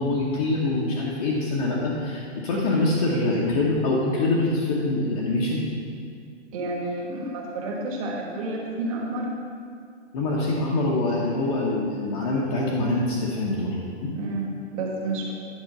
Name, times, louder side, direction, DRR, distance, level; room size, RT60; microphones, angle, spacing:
voice 1, 0.0-5.6 10.1-13.7 14.0-14.1, left 2 dB, 35° left, -5 dB, 1.0 m, -24 dB
voice 2, 6.5-9.3 14.1-15.3, right 2 dB, 30° right, -1 dB, 1.4 m, -30 dB
10.5 x 4.3 x 6.6 m, 2.3 s
hypercardioid pair, 170°, 35 cm